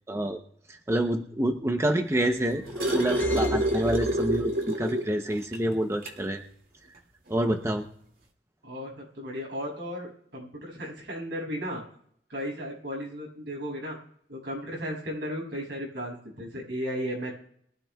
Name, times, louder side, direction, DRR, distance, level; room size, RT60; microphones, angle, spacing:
voice 1, 0.1-0.4 0.7-2.6 2.9-6.4 7.3-7.9, right 1 dB, 15° right, 5 dB, 0.7 m, -27 dB
sound 1, 2.2-5.1 5.5-5.6 6.0-6.2 7.3-7.4, right 1 dB, 55° right, 2.2 m, -27 dB
sound 2, 2.3-4.6, equal, 10° left, 2.1 m, -37 dB
voice 2, 8.6-11.8 12.3-14.0 14.3-17.3, equal, 80° right, -1 dB, 6.7 m, -35 dB
23.0 x 13.0 x 2.3 m, 0.66 s
head